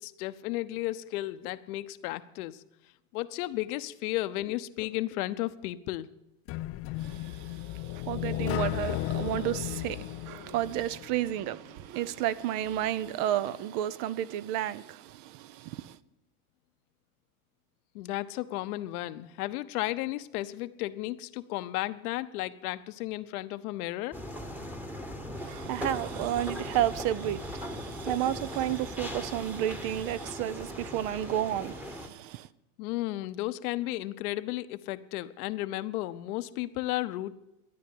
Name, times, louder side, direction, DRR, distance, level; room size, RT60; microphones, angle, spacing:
voice 1, 0.0-2.6 3.1-6.1 17.9-24.2 32.8-37.3, left 16 dB, 75° left, 0.9 m, -34 dB
sound 1, 6.5-11.4, left 15 dB, 35° left, 0.4 m, -34 dB
voice 2, 7.0-16.0 25.3-32.5, right 12 dB, 50° right, 0.7 m, -32 dB
sound 2, 24.1-32.1, left 1 dB, 5° right, 1.2 m, -39 dB
13.0 x 9.4 x 8.5 m
supercardioid pair, 125°, 45 cm